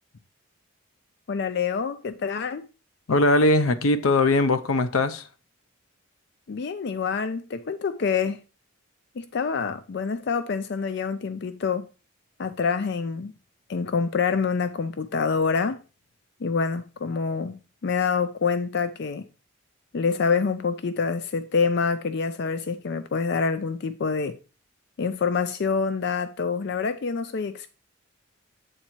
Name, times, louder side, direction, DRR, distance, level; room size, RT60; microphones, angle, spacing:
voice 1, 1.3-2.7 6.5-8.4 9.2-11.9 12.4-13.3 13.7-15.8 16.4-19.3 19.9-24.4 25.0-27.7, left 5 dB, 55° left, 0.4 m, -26 dB
voice 2, 3.1-5.3, left 2 dB, 90° left, 0.7 m, -20 dB
7.8 x 4.2 x 4.4 m
head